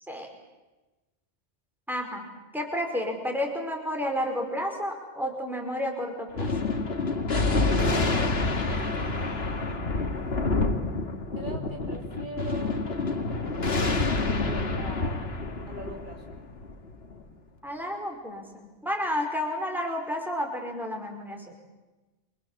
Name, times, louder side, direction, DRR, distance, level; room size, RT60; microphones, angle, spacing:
voice 1, 1.9-2.3 2.5-6.5 17.6-21.5, equal, ahead, 2 dB, 5.1 m, -31 dB
Thunder, 6.3-17.2, left 3 dB, 65° left, 2.2 m, -28 dB
voice 2, 8.6-10.0 11.3-13.0 14.4-15.2 15.7-16.3, right 1 dB, 45° right, 0 dB, 3.7 m, -42 dB
27.5 x 25.0 x 7.5 m, 1.1 s
omnidirectional pair, 1.2 m